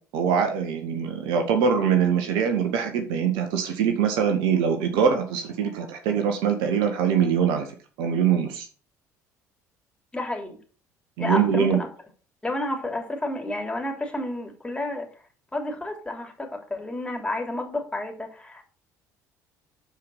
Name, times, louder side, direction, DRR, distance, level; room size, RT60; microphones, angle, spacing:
voice 1, 0.1-7.7 8.0-8.7 11.2-11.8, right 7 dB, 60° right, 5 dB, 1.7 m, -23 dB
voice 2, 10.1-10.6 11.2-11.9 12.4-15.1 15.5-18.7, left 1 dB, 10° left, 2 dB, 3.2 m, -30 dB
12.5 x 5.0 x 5.6 m, 0.40 s
figure-of-eight pair, 55°, 9 cm